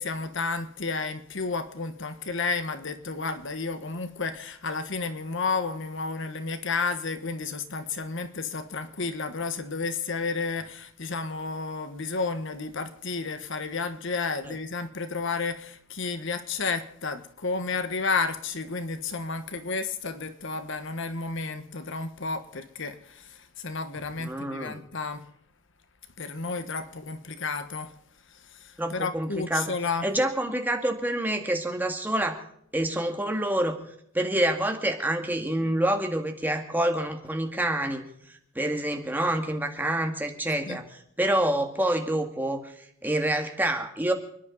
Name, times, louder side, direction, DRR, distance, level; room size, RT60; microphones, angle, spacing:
voice 1, 0.0-25.3 26.2-28.0 28.3-30.1 40.7-40.8, left 4 dB, 60° left, 1.2 m, -32 dB
voice 2, 24.2-24.8 28.8-29.7 30.0-32.4 32.7-33.8 34.1-38.0 38.6-42.6 43.0-44.1, right 1 dB, 10° right, 2.0 m, -27 dB
29.5 x 10.5 x 4.0 m
head